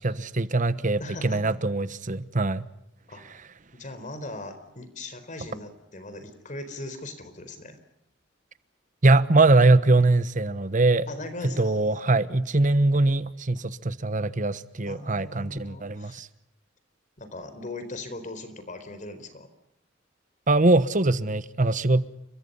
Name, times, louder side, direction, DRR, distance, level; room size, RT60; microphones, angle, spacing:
voice 1, 0.0-2.7 9.0-11.1 11.6-16.3 20.5-22.1, right 2 dB, 45° right, 1.2 m, -22 dB
voice 2, 1.0-1.4 3.1-3.2 3.7-7.8 11.1-12.0 14.9-16.2 17.2-19.5, left 2 dB, 45° left, 4.3 m, -39 dB
30.0 x 24.5 x 5.6 m
head